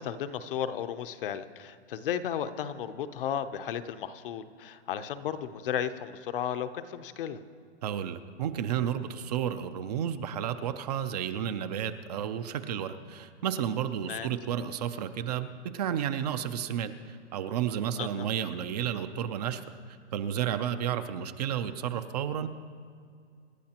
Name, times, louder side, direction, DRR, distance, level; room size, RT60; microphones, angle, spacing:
voice 1, 0.0-7.4 14.1-14.3 18.0-18.3, left 9 dB, 50° left, 11 dB, 0.7 m, -34 dB
voice 2, 7.8-19.6 20.1-22.5, right 9 dB, 35° right, 10 dB, 0.6 m, -32 dB
27.0 x 11.5 x 2.9 m, 2.2 s
hypercardioid pair, 155°, 35 cm